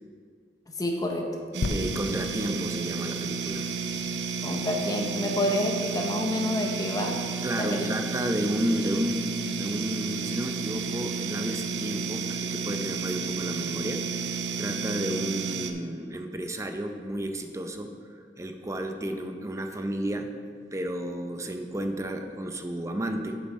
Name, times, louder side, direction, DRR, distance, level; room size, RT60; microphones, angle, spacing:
voice 1, 0.7-1.3 4.4-7.2 7.6-7.9, left 1 dB, 20° left, 1 dB, 0.8 m, -28 dB
sound 1, 1.5-15.7, right 5 dB, 75° right, 0.7 m, -32 dB
sound 2, 1.6-5.2 5.8-5.9, left 2 dB, 85° left, 0.5 m, -36 dB
voice 2, 1.7-3.7 7.4-20.3 20.7-23.4, right 1 dB, 15° right, 5 dB, 0.6 m, -32 dB
9.3 x 7.1 x 4.2 m, 2.1 s
head